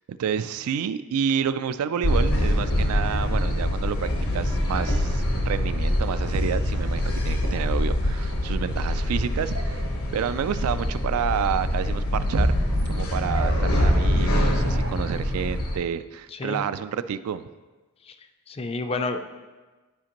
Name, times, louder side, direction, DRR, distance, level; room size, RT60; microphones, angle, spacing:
voice 1, 0.1-9.8 10.1-12.5 12.9-17.5, right 7 dB, 85° right, 13 dB, 0.3 m, -29 dB
sound 1, 2.0-15.8, left 1 dB, 80° left, 1.1 m, -24 dB
sound 2, 3.6-14.7, right 1 dB, 35° right, 0.6 m, -37 dB
sound 3, 7.8-7.9 9.5-10.5 13.3-15.0, right 2 dB, 60° right, 1.0 m, -38 dB
voice 2, 16.3-16.6 18.0-18.2 18.5-19.2, left 3 dB, 25° left, 7 dB, 0.3 m, -29 dB
11.0 x 5.1 x 2.9 m, 1.3 s
head